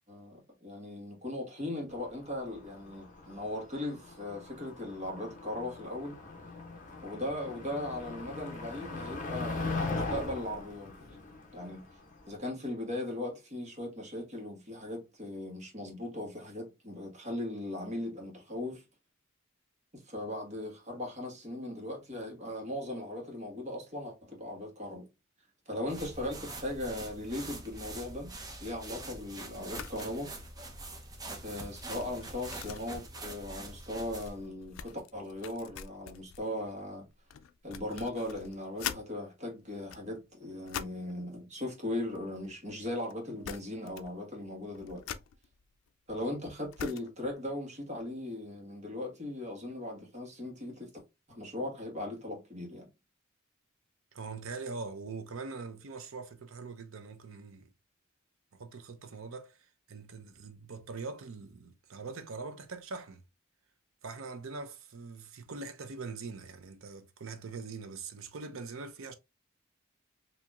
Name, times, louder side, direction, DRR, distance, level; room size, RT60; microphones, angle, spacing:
voice 1, 0.1-6.2 7.0-11.2 11.5-11.8 12.3-18.8 19.9-25.1 25.7-28.3 28.6-30.3 31.4-37.1 37.6-45.0 46.1-50.9 51.3-52.9, left 1 dB, 35° right, 1.4 m, -38 dB
Motor vehicle (road), 2.0-12.3, left 3 dB, 40° left, 0.9 m, -40 dB
sound 1, 25.9-34.4, right 2 dB, 20° right, 0.7 m, -44 dB
sound 2, 29.7-30.1 30.4-30.6 31.0-39.1 39.7-41.1 42.0-42.8 43.1-43.2 43.4-44.2 44.5-47.3, left 9 dB, 85° left, 0.4 m, -45 dB
voice 2, 54.1-57.7 58.5-63.2 64.0-69.1, right 4 dB, 85° right, 0.7 m, -43 dB
4.3 x 2.8 x 2.4 m
head